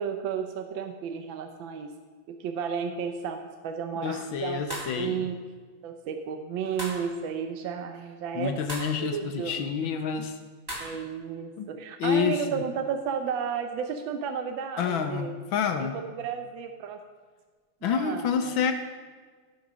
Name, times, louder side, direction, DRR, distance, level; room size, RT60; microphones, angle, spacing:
voice 1, 0.0-1.9 2.3-5.4 5.8-8.5 9.0-9.6 10.8-15.3 15.8-17.0 17.8-18.5, right 6 dB, 70° right, 6 dB, 1.4 m, -33 dB
voice 2, 4.0-5.3 8.3-10.4 11.6-11.7 12.0-12.6 14.8-16.0 17.8-18.7, left 7 dB, 75° left, 7 dB, 1.5 m, -28 dB
sound 1, 4.7-5.0 6.8-7.1 8.7-8.9 10.7-10.9, right 1 dB, 10° right, 3.3 m, -36 dB
14.5 x 5.7 x 6.2 m, 1.5 s
omnidirectional pair, 2.3 m